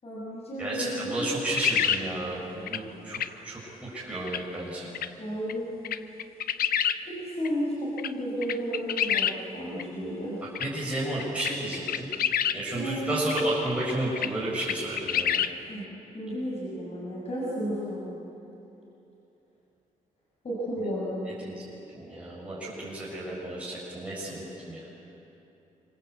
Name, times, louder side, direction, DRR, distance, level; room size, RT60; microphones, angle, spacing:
voice 1, 0.0-1.4 5.2-5.7 7.0-10.4 12.8-13.3 15.7-15.9 16.1-18.1 20.4-21.2, equal, 45° left, -6 dB, 7.0 m, -33 dB
voice 2, 0.6-4.9 10.6-12.1 12.5-15.4 21.3-24.9, right 1 dB, 10° right, -7 dB, 6.9 m, -32 dB
sound 1, 1.6-2.0 2.7-2.8 3.1-3.3 4.3-4.4 4.9-5.1 5.5-5.6 5.8-7.0 7.4-7.5 8.0-8.1 8.4-9.3 9.8-9.9 10.6-10.7 11.2-12.6 13.3-13.4 13.9-14.3 14.6-15.5, left 9 dB, 85° left, 0.8 m, -27 dB
27.0 x 25.5 x 8.3 m, 3.0 s
wide cardioid pair, 125°, 15 cm